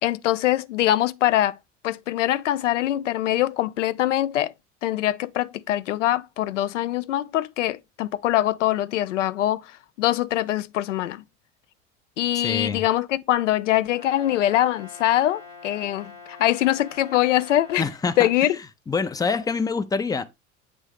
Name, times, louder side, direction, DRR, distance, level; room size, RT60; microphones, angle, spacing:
voice 1, 0.0-1.6 1.8-4.5 4.8-9.7 10.0-11.2 12.2-17.8 18.2-18.6, left 13 dB, 75° left, 0.5 m, -23 dB
voice 2, 12.3-12.8 17.8-18.5 18.9-20.2, left 4 dB, 10° left, 0.5 m, -26 dB
Brass instrument, 13.9-17.9, left 4 dB, 90° left, 2.6 m, -44 dB
8.1 x 3.5 x 3.3 m
figure-of-eight pair, 70°, 37 cm